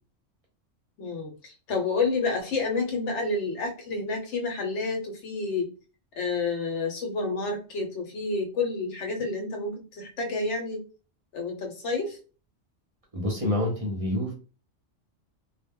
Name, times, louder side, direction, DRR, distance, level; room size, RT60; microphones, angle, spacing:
voice 1, 1.0-5.7 6.2-10.8 11.3-12.2, left 3 dB, 70° left, 1.0 m, -29 dB
voice 2, 13.1-14.3, left 1 dB, 35° right, 0.7 m, -27 dB
2.1 x 2.1 x 3.5 m
omnidirectional pair, 1.3 m